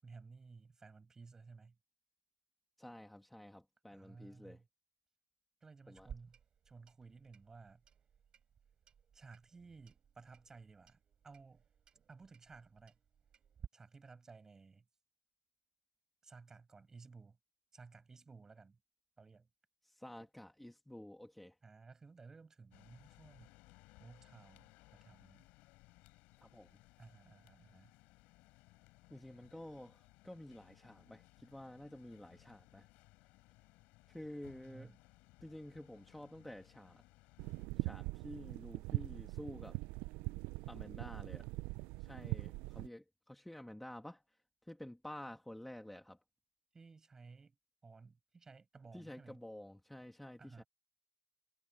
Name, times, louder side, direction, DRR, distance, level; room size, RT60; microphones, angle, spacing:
voice 1, 0.0-1.8 3.9-4.7 5.6-6.4 6.6-7.8 9.1-11.6 12.1-13.0 13.7-14.8 16.2-17.4 17.7-18.8 19.2-19.5 21.6-23.5 24.0-25.5 27.0-27.9 34.6-35.0 46.7-47.6 47.8-49.4 50.4-50.7, right 4 dB, 20° right, 7.9 m, -57 dB
voice 2, 2.8-4.6 5.9-6.1 19.8-21.6 26.4-26.8 29.1-32.9 34.1-35.0 35.4-37.0 37.8-39.8 40.7-41.5 42.0-44.4 44.6-46.2 48.9-50.6, left 1 dB, 5° left, 2.8 m, -51 dB
Clock, 5.9-13.7, right 8 dB, 40° right, 5.2 m, -58 dB
sound 1, 22.7-37.7, left 22 dB, 70° left, 7.1 m, -64 dB
sound 2, 37.4-42.9, right 23 dB, 70° right, 0.5 m, -41 dB
supercardioid pair, 95°, 2 cm